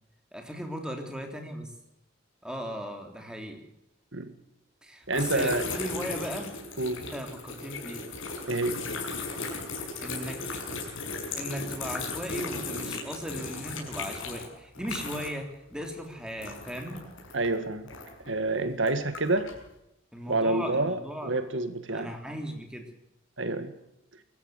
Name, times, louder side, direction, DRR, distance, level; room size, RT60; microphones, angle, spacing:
voice 1, 0.3-1.7 2.4-3.6 4.8-6.6 7.0-8.0 10.0-10.4 11.4-17.0 20.1-21.4 21.9-22.8, equal, 5° right, 3 dB, 3.4 m, -37 dB
sound 1, 5.1-15.5 15.8-18.3 18.8-19.6, left 3 dB, 75° left, 6.6 m, -36 dB
voice 2, 5.1-5.7 6.8-7.0 8.5-8.8 17.3-17.9 18.3-19.5 20.3-22.1 23.4-23.7, right 2 dB, 65° right, 10 dB, 1.7 m, -28 dB
24.5 x 14.5 x 8.0 m, 0.85 s
head